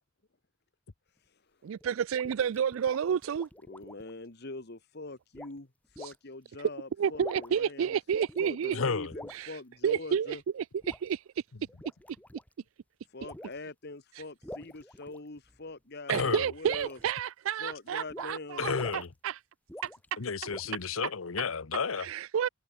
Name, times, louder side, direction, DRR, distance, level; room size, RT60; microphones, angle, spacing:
voice 1, 1.6-3.5 6.0-6.1 7.0-8.8 9.3-9.6 9.8-11.2 16.1-19.4 19.8-19.9 22.0-22.5, right 8 dB, 80° right, 0.4 m, -30 dB
sound 1, 1.8-4.1 5.3-5.6 6.0-6.2 7.0-7.7 8.1-8.7 9.1-9.4 10.8-11.1 11.7-12.5 13.2-13.6 14.4-15.6 16.2-17.1 18.1-18.3 18.6-19.1 19.7-20.1 20.5-20.9, left 1 dB, 5° left, 2.3 m, -46 dB
voice 2, 3.7-5.7 6.0-8.0 8.4-10.4 13.1-17.0 17.6-18.7, left 2 dB, 55° left, 1.7 m, -43 dB
voice 3, 8.7-9.1 16.1-16.4 18.6-19.1 20.2-22.1, left 5 dB, 85° left, 0.9 m, -32 dB
head